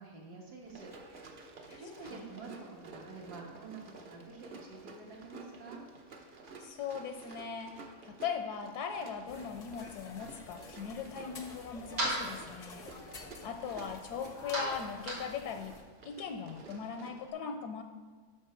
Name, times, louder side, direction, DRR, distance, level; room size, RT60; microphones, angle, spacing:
voice 1, 0.0-1.5 1.8-2.5 2.8-5.8, right 4 dB, 70° right, -2 dB, 2.0 m, -48 dB
Run, 0.6-17.3, right 3 dB, 45° right, 0.7 m, -52 dB
voice 2, 6.6-12.9 13.4-15.8 16.0-17.8, left 6 dB, 80° left, 6 dB, 1.2 m, -39 dB
sound 1, 9.3-15.8, left 3 dB, 50° left, 0.4 m, -49 dB
sound 2, 11.0-16.8, right 1 dB, 90° right, 2.6 m, -41 dB
8.2 x 6.2 x 4.4 m, 1.4 s
omnidirectional pair, 1.7 m